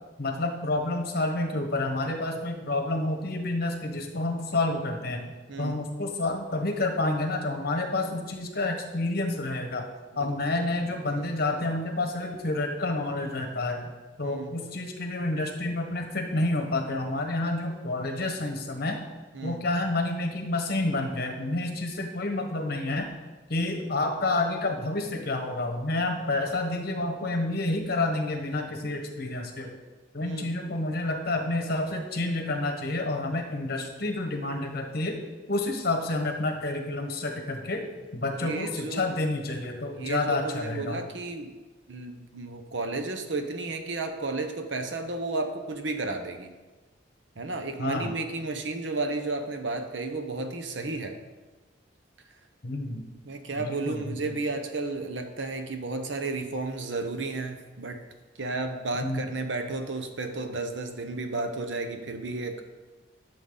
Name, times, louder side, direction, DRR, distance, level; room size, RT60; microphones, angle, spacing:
voice 1, 0.2-5.3 5.6-9.9 10.2-13.9 14.2-19.0 19.4-23.1 23.5-29.8 30.1-35.2 35.5-37.8 38.1-41.0 47.8-48.1 52.6-53.0 53.6-54.3 59.0-59.2, left 2 dB, 55° left, 4 dB, 1.3 m, -29 dB
voice 2, 5.5-5.8 10.1-11.3 14.2-14.6 19.3-19.6 30.2-30.6 38.4-39.1 40.0-41.5 41.9-46.5 47.4-51.2 53.3-58.0 58.4-62.6, right 3 dB, 80° right, 7 dB, 1.0 m, -33 dB
12.0 x 7.0 x 4.0 m, 1.2 s
head